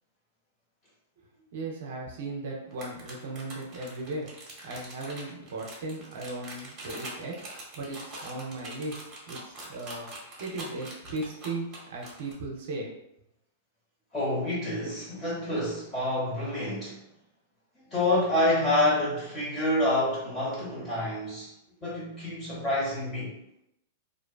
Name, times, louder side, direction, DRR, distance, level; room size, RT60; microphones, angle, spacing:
voice 1, 1.5-4.3 4.6-7.4 7.8-10.1 10.4-12.9, right 2 dB, 60° right, -1 dB, 0.5 m, -37 dB
sound 1, 2.7-12.3, right 2 dB, 30° right, 1.0 m, -43 dB
voice 2, 14.1-17.0 17.9-21.5 21.8-23.3, left 1 dB, 20° left, -7 dB, 1.4 m, -27 dB
2.5 x 2.2 x 2.3 m, 0.83 s
figure-of-eight pair, 100°, 0 cm